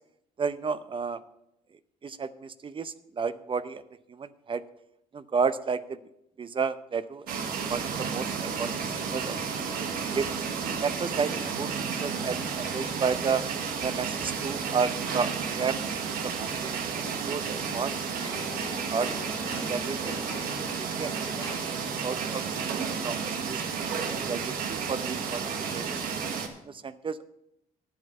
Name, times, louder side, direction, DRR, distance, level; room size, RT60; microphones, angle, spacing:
voice 1, 0.4-1.2 2.0-3.8 4.1-4.6 5.1-6.0 6.4-7.4 7.7-9.7 10.1-10.3 10.8-13.4 13.8-15.3 15.6-15.8 16.2-16.8 17.3-18.0 18.2-18.3 18.9-19.1 19.6-20.3 20.6-21.5 22.0-22.4 22.9-23.6 24.3-26.1 26.7-27.2, right 5 dB, 35° right, 14 dB, 0.6 m, -32 dB
sound 1, 7.3-26.5, right 6 dB, 80° right, 1.2 m, -32 dB
sound 2, 18.2-22.3, left 2 dB, 30° left, 1.4 m, -43 dB
11.5 x 7.7 x 5.3 m, 0.82 s
supercardioid pair, 75°, 15 cm